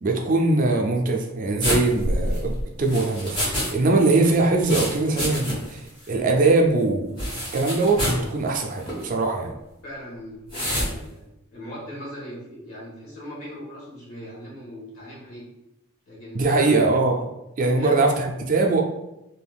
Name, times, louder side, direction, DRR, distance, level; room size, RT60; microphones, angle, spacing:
voice 1, 0.0-2.5 2.8-5.8 6.1-7.2 7.5-9.5 16.3-17.2 17.6-18.8, right 3 dB, 40° right, 2 dB, 0.3 m, -21 dB
sound 1, 1.6-3.7 4.0-5.8 6.0-6.1 7.2-8.3 8.8-9.0 10.5-10.9, equal, 25° left, 1.0 m, -27 dB
voice 2, 9.8-11.2 11.5-15.5 16.1-16.8 17.8-18.0, equal, 85° left, -6 dB, 1.2 m, -39 dB
3.4 x 2.7 x 2.3 m, 0.89 s
head